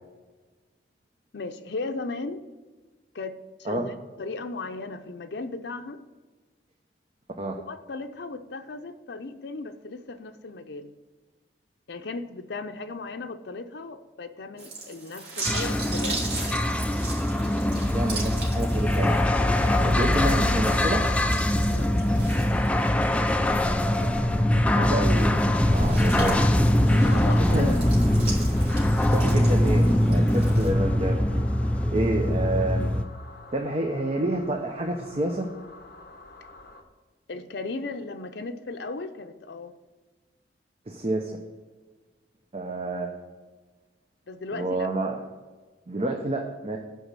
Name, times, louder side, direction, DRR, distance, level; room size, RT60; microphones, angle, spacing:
voice 1, 1.3-2.5 3.1-3.3 3.6-6.0 7.7-10.9 11.9-16.4 21.7-22.5 26.9-27.8 37.3-39.7 44.3-44.9, left 3 dB, 75° left, 7 dB, 0.6 m, -36 dB
sound 1, 14.6-23.2 23.6-23.7 25.4-30.7, right 3 dB, 65° right, 2.7 m, -39 dB
sound 2, 15.4-33.0, left 1 dB, 5° left, 0.3 m, -22 dB
voice 2, 17.9-19.2 19.8-21.1 24.7-25.3 25.7-26.4 27.5-27.8 29.1-31.2 31.9-32.9 33.5-35.5 40.9-41.3 42.5-43.1 44.5-45.2 45.9-46.8, right 1 dB, 35° right, 2 dB, 0.7 m, -28 dB
sound 3, 23.5-36.8, left 2 dB, 55° left, 1.0 m, -46 dB
8.2 x 5.2 x 7.5 m, 1.3 s
head